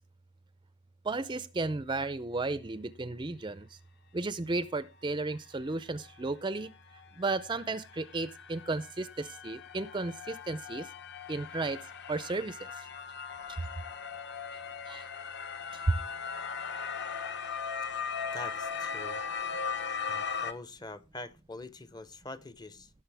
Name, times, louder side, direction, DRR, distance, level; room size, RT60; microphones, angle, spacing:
voice 1, 1.0-3.8 4.1-6.7 7.2-10.9 11.3-11.8 12.1-12.9 13.5-13.6 14.5-15.0 15.7-16.0, right 3 dB, 20° right, 0.5 m, -34 dB
sound 1, 6.0-6.1 6.4-20.5, left 6 dB, 50° left, 1.0 m, -39 dB
voice 2, 18.3-19.2 20.1-22.9, left 2 dB, 20° left, 0.7 m, -44 dB
17.0 x 6.4 x 3.4 m
head